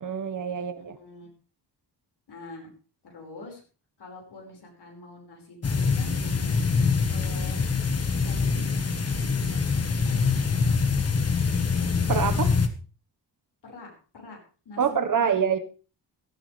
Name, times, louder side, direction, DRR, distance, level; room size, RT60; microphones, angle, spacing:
voice 1, 0.0-0.9 12.1-12.5 14.8-15.6, right 7 dB, 45° right, 1.4 m, -25 dB
voice 2, 0.5-1.3 2.3-2.7 3.0-3.6 4.0-6.6 7.1-7.6 8.1-10.8 13.6-14.4 14.7-14.8 15.2-15.3, left 2 dB, 65° left, 5.3 m, -45 dB
sound 1, 5.6-12.7, left 5 dB, 35° left, 1.5 m, -24 dB
15.5 x 15.0 x 3.4 m
wide cardioid pair, 160°, 42 cm